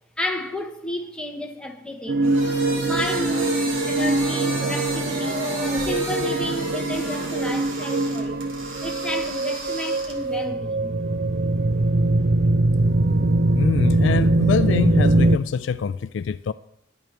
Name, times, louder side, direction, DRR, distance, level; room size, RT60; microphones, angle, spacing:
voice 1, 0.2-2.4 2.8-5.6 5.8-8.4 8.8-10.9, left 1 dB, 5° left, 1.1 m, -32 dB
sound 1, 2.1-15.4, right 2 dB, 50° right, 0.5 m, -22 dB
sound 2, 2.2-7.3, left 2 dB, 15° right, 2.5 m, -34 dB
sound 3, 2.2-10.4, right 2 dB, 75° right, 2.8 m, -34 dB
voice 2, 13.5-16.5, left 5 dB, 65° left, 0.3 m, -24 dB
21.0 x 8.0 x 3.4 m
head